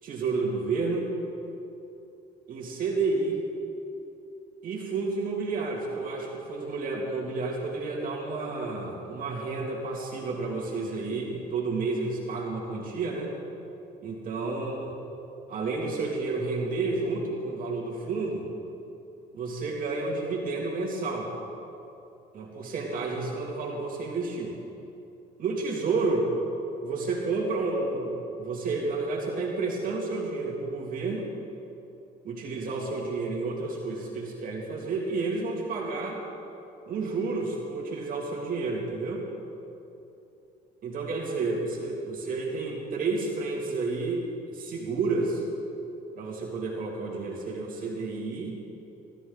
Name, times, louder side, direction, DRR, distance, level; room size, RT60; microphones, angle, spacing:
voice 1, 0.0-1.1 2.5-3.4 4.6-13.3 14.0-14.9 15.5-18.5 19.3-21.3 22.3-24.5 25.4-26.3 26.8-31.3 32.2-36.2 36.9-39.2 40.8-45.4 46.1-48.5, right 3 dB, 55° right, -2 dB, 2.7 m, -30 dB
20.0 x 13.0 x 4.0 m, 2.8 s
cardioid pair, 110°, 17 cm